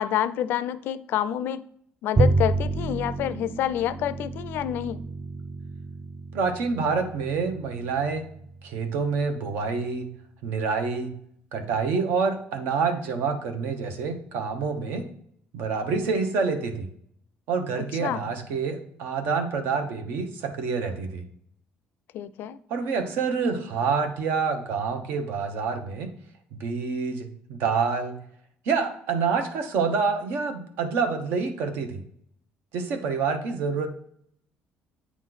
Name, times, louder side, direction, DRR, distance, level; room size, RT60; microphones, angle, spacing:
voice 1, 0.0-1.7 2.0-5.0 17.8-18.2 22.1-22.6, left 11 dB, 65° left, 14 dB, 0.3 m, -28 dB
Bowed string instrument, 2.1-8.6, right 3 dB, 15° right, 0.3 m, -29 dB
voice 2, 6.3-8.3 8.6-10.1 10.4-11.1 11.5-15.1 15.5-16.9 17.5-21.2 22.7-26.1 26.5-28.2 28.6-32.0 32.7-33.9, right 5 dB, 80° right, 6 dB, 1.0 m, -27 dB
8.5 x 3.1 x 3.9 m, 0.67 s
cardioid pair, 160°, 4 cm